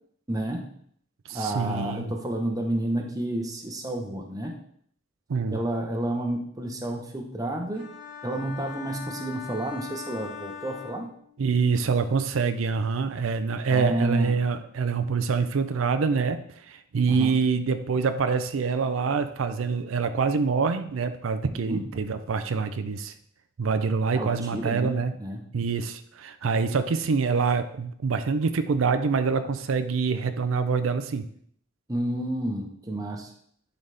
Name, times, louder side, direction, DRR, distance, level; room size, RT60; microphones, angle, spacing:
voice 1, 0.3-0.7 1.3-4.5 5.5-7.8 8.2-11.1 13.7-14.3 17.1-17.3 21.7-21.8 24.1-25.4 31.9-33.3, right 1 dB, 20° right, 2 dB, 0.9 m, -30 dB
voice 2, 1.3-2.1 5.3-5.6 11.4-23.1 23.6-25.1 25.5-31.3, right 5 dB, 85° right, 10 dB, 0.5 m, -25 dB
sound 1, 7.7-11.6, left 7 dB, 45° left, 2.1 m, -41 dB
11.0 x 4.0 x 3.4 m, 0.63 s
head